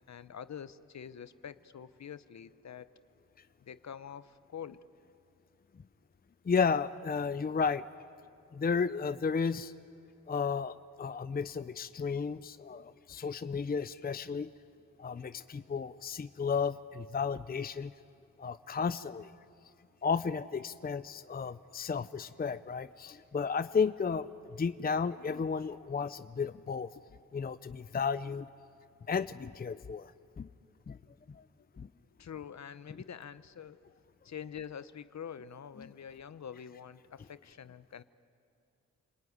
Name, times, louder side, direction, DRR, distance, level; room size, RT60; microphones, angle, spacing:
voice 1, 0.1-2.9 3.6-4.8 27.0-27.1 32.2-33.8 34.2-38.0, left 8 dB, 55° left, 14 dB, 1.0 m, -46 dB
voice 2, 6.4-7.8 8.5-9.7 10.3-14.5 15.0-17.9 18.4-19.3 20.0-26.9 27.3-28.5 29.1-30.1 30.4-30.5 30.9-31.0 31.3-31.4 31.8-31.9 35.8-35.9, left 5 dB, 30° left, 13 dB, 0.6 m, -33 dB
29.0 x 20.5 x 9.6 m, 2.5 s
cardioid pair, 60°, 33 cm